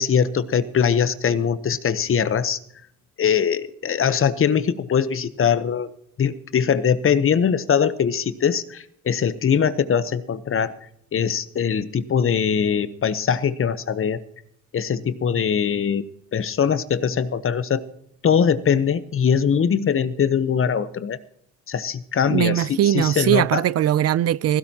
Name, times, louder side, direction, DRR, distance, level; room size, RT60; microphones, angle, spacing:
voice 1, 0.0-2.6 3.2-5.9 6.2-10.7 11.1-14.2 14.7-16.0 16.3-17.8 18.2-21.2 21.7-23.6, left 7 dB, 40° left, 0.9 m, -21 dB
voice 2, 22.3-24.6, right 12 dB, 50° right, 0.4 m, -20 dB
16.0 x 15.5 x 2.9 m
cardioid pair, 85°, 32 cm